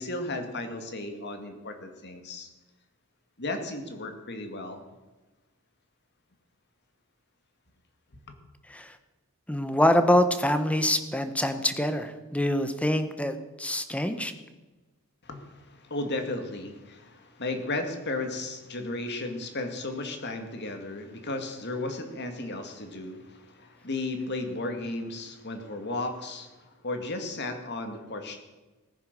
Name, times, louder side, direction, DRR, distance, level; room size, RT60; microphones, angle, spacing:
voice 1, 0.0-2.5 3.4-4.8 15.2-28.4, left 2 dB, 50° left, 6 dB, 2.3 m, -34 dB
voice 2, 9.5-14.3, left 1 dB, 5° left, 9 dB, 1.1 m, -25 dB
18.0 x 10.0 x 6.8 m, 1.2 s
head